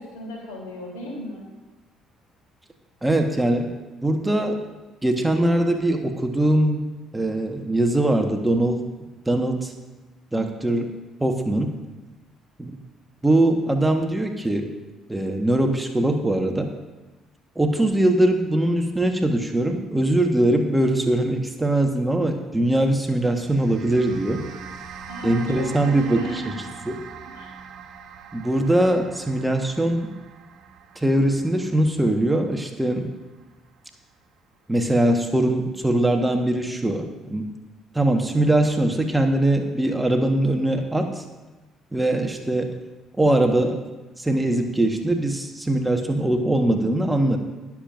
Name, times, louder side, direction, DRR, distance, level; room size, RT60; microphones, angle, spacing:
voice 1, 0.0-1.4 25.1-26.6 27.3-27.6, equal, 75° left, -2 dB, 3.3 m, -35 dB
voice 2, 3.0-3.7 4.0-4.6 5.0-6.9 7.1-8.8 9.3-9.7 10.3-10.9 11.2-11.7 12.6-12.7 13.2-14.7 15.1-16.7 17.5-24.4 25.2-26.5 26.9-27.0 28.3-30.1 30.9-33.1 34.7-37.5 37.9-41.2 41.9-42.7 43.2-43.8 44.2-47.4, right 1 dB, 10° right, 4 dB, 1.3 m, -21 dB
sound 1, 23.2-33.7, right 6 dB, 55° right, 0.9 m, -42 dB
21.5 x 7.3 x 2.6 m, 1.1 s
hypercardioid pair, 50°, 0 cm